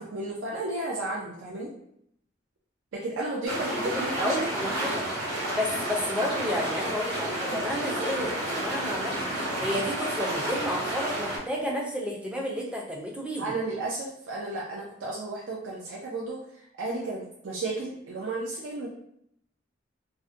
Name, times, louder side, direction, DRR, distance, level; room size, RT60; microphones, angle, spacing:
voice 1, 0.0-1.7 2.9-4.9 13.4-18.9, right 2 dB, 75° right, -3 dB, 0.4 m, -33 dB
sound 1, 3.4-11.4, right 1 dB, 55° right, 1.0 m, -31 dB
voice 2, 3.7-5.0 5.6-13.5, equal, 5° right, -2 dB, 0.4 m, -31 dB
2.4 x 2.1 x 2.5 m, 0.71 s
head